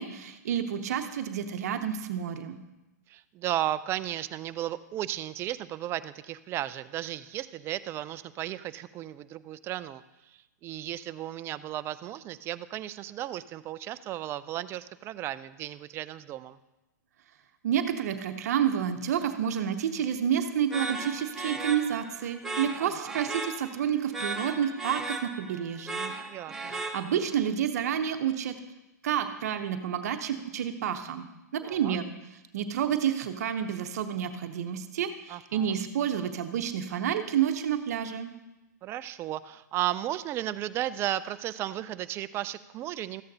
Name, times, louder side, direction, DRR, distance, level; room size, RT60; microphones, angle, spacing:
voice 1, 0.0-2.6 17.6-26.1 26.6-28.6 29.0-31.3 31.5-32.1 32.5-38.3, right 9 dB, 60° right, 7 dB, 0.8 m, -29 dB
voice 2, 3.1-10.0 10.6-16.6 22.8-23.2 26.2-26.8 31.6-32.0 35.3-35.7 38.8-43.2, right 13 dB, 25° right, 14 dB, 0.4 m, -34 dB
sound 1, 20.7-27.4, right 3 dB, 5° right, 1.0 m, -37 dB
14.0 x 8.8 x 2.7 m, 0.99 s
hypercardioid pair, 120°, 10 cm